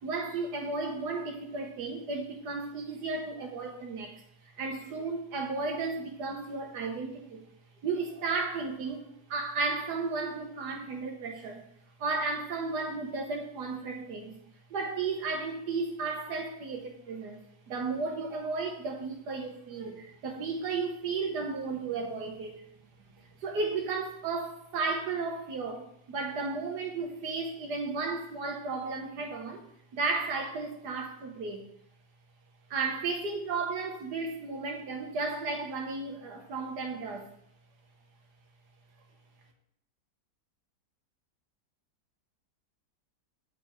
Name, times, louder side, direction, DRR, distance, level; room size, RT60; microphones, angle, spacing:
voice 1, 0.0-4.2 4.6-7.5 7.8-9.0 9.3-11.6 12.0-14.3 14.7-17.4 17.7-22.5 23.4-29.6 29.9-31.6 32.7-37.3, right 4 dB, 75° right, 3 dB, 1.6 m, -34 dB
7.4 x 4.5 x 4.5 m, 0.72 s
omnidirectional pair, 1.8 m